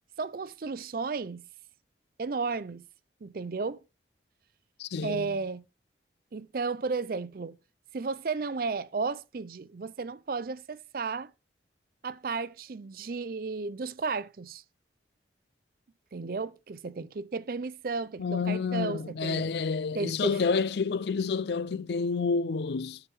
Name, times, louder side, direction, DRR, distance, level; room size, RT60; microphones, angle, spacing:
voice 1, 0.2-1.4 2.2-2.8 3.2-3.8 5.0-5.6 6.3-7.6 7.9-11.3 12.0-14.6 16.1-19.5 19.9-20.4, right 4 dB, 50° right, 0.4 m, -33 dB
voice 2, 4.8-5.3 18.2-23.0, left 5 dB, 65° left, 0.4 m, -29 dB
10.0 x 4.7 x 3.5 m
head